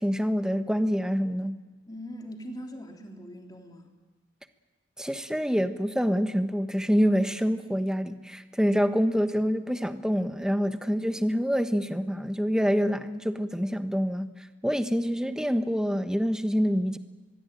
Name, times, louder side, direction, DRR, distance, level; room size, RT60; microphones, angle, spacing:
voice 1, 0.0-1.6 5.0-14.3 14.6-17.0, equal, 5° right, 9 dB, 1.2 m, -26 dB
voice 2, 1.9-3.9, equal, 20° left, 2 dB, 3.5 m, -41 dB
25.5 x 22.0 x 9.2 m, 1.4 s
head